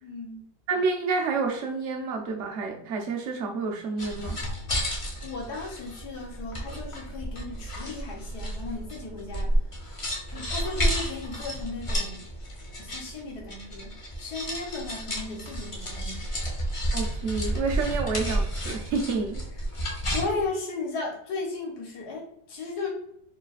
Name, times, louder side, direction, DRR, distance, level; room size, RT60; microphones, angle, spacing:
voice 1, 0.0-0.5 5.2-9.5 10.3-12.2 12.8-16.2 20.1-22.9, left 3 dB, 70° left, 0 dB, 1.5 m, -35 dB
voice 2, 0.7-4.4 16.9-19.4, right 4 dB, 55° right, 3 dB, 0.9 m, -29 dB
sound 1, 4.0-20.4, equal, 40° left, 0.4 m, -31 dB
4.4 x 3.3 x 2.3 m, 0.73 s
omnidirectional pair, 1.9 m